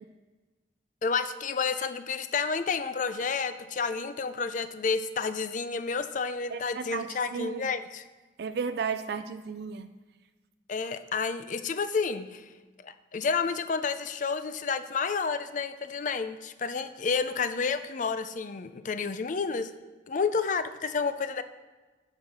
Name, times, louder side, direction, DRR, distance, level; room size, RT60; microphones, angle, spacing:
voice 1, 1.0-8.0 10.7-12.4 12.8-19.7 20.1-21.4, left 5 dB, 45° left, 11 dB, 0.5 m, -30 dB
voice 2, 6.5-7.6 8.4-9.9, right 5 dB, 60° right, 10 dB, 0.4 m, -34 dB
8.7 x 5.6 x 6.1 m, 1.3 s
head